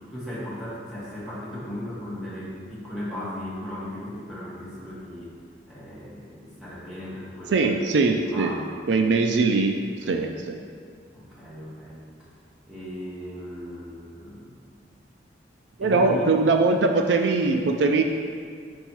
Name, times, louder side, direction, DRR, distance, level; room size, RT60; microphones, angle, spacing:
voice 1, 0.1-5.4 5.7-7.7 8.0-8.7 10.0-10.3 11.1-12.1 12.7-14.6 15.8-16.3, left 1 dB, 5° right, -9 dB, 1.6 m, -37 dB
voice 2, 7.5-8.5 8.9-9.7 10.1-10.6 15.8-18.0, right 3 dB, 75° right, 4 dB, 0.4 m, -21 dB
5.4 x 5.4 x 4.5 m, 2.1 s
head